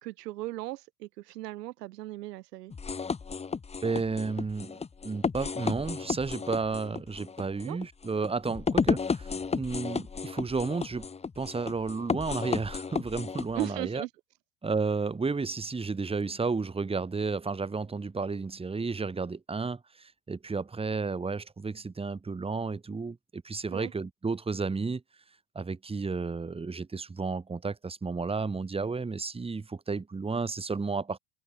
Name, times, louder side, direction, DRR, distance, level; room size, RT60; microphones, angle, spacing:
voice 1, 0.0-2.7 7.6-7.8 13.5-14.1 23.7-23.9, right 17 dB, 85° right, 1.8 m, -37 dB
sound 1, 2.7-13.7, left 5 dB, 15° left, 1.2 m, -33 dB
voice 2, 3.8-4.7 5.0-11.1 11.4-14.0 14.6-25.0 25.5-31.2, right 4 dB, 10° right, 2.3 m, -32 dB
supercardioid pair, 120°, 47 cm